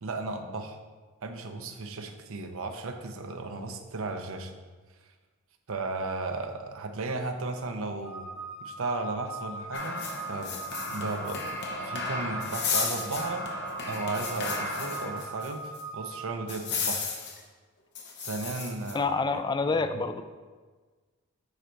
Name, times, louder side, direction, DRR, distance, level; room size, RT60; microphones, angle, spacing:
voice 1, 0.0-0.8 1.2-4.5 5.7-8.3 8.6-10.5 10.9-11.4 11.8-13.5 13.9-17.1 18.2-19.8, right 3 dB, 65° right, 6 dB, 0.7 m, -35 dB
sound 1, 8.0-16.4, right 3 dB, 10° right, 1.6 m, -40 dB
sound 2, 9.7-15.5 15.7-15.8 16.5-17.4 17.9-18.9, left 4 dB, 55° left, 1.0 m, -34 dB
voice 2, 18.9-20.2, left 4 dB, 20° left, 9 dB, 0.4 m, -27 dB
9.7 x 4.0 x 4.5 m, 1.4 s
head